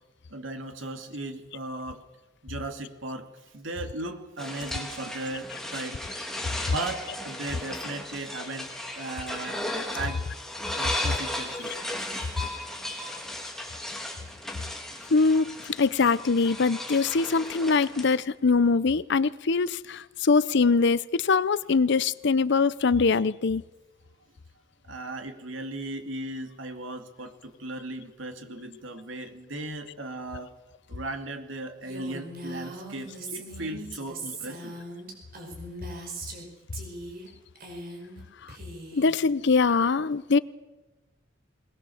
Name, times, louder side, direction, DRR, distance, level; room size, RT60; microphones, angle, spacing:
voice 1, 0.3-2.0 2.4-6.0 6.4-9.6 9.9-10.2 10.8-11.7 24.9-30.5 30.9-34.8, right 2 dB, 75° right, 2.6 m, -37 dB
sound 1, 4.4-18.1, left 1 dB, ahead, 2.9 m, -35 dB
voice 2, 15.1-23.6 38.9-40.4, left 4 dB, 60° left, 0.6 m, -23 dB
Female speech woman speaking, 31.8-36.4 36.7-37.3 37.5-38.2 38.5-39.1, right 2 dB, 50° right, 5.6 m, -40 dB
21.5 x 21.0 x 7.2 m
head